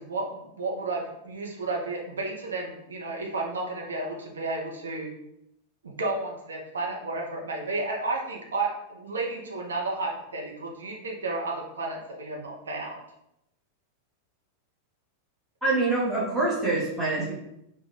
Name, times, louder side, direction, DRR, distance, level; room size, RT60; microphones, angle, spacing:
voice 1, 0.0-5.1 5.8-13.0, right 2 dB, 70° right, -1 dB, 0.8 m, -32 dB
voice 2, 15.6-17.3, right 2 dB, 10° right, -6 dB, 1.7 m, -25 dB
4.9 x 2.4 x 4.1 m, 0.82 s
figure-of-eight pair, 90°, 0 cm